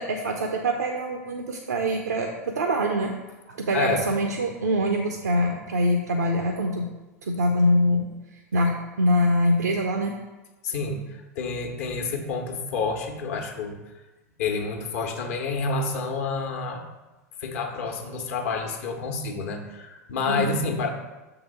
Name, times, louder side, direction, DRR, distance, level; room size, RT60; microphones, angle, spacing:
voice 1, 0.0-3.1 3.5-6.9 7.2-8.1 8.5-10.2 20.3-20.5, equal, 80° right, 3 dB, 0.6 m, -24 dB
voice 2, 3.7-4.1 10.6-13.9 14.4-16.9 17.4-20.9, left 4 dB, 60° left, 3 dB, 1.1 m, -29 dB
6.7 x 3.9 x 5.3 m, 1.1 s
figure-of-eight pair, 85°, 9 cm